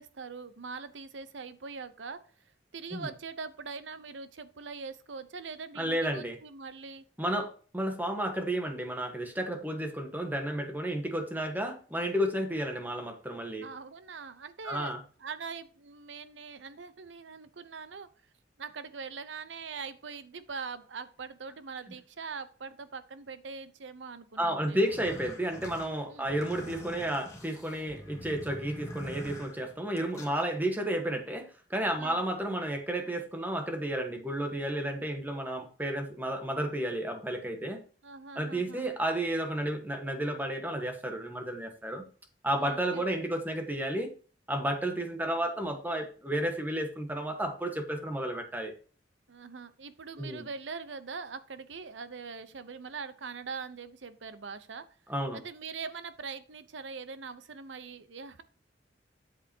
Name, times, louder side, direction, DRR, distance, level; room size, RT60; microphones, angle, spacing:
voice 1, 0.0-7.0 13.6-18.1 18.6-24.8 26.1-26.3 32.0-32.2 38.0-38.9 42.6-43.1 49.3-54.8 55.3-58.4, right 5 dB, 80° right, 13 dB, 0.8 m, -42 dB
voice 2, 5.7-6.4 7.2-13.7 14.6-15.0 24.4-37.8 38.3-42.0 42.4-44.1 44.5-48.7 50.2-50.5 55.1-55.4, right 1 dB, 10° right, 5 dB, 1.2 m, -32 dB
sound 1, 24.8-30.4, equal, 15° left, 1.9 m, -45 dB
8.2 x 7.6 x 2.8 m, 0.40 s
head